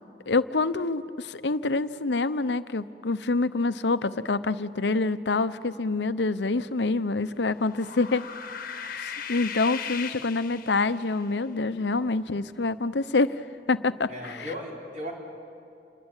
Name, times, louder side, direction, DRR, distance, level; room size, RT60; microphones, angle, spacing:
voice 1, 0.3-8.3 8.6-13.4 13.7-14.5, left 3 dB, 80° left, 13 dB, 0.8 m, -26 dB
sound 1, 7.4-11.2, left 7 dB, 55° left, 1.3 m, -37 dB
voice 2, 14.1-15.1, equal, 45° right, -1 dB, 5.2 m, -36 dB
29.0 x 22.0 x 9.1 m, 2.5 s
head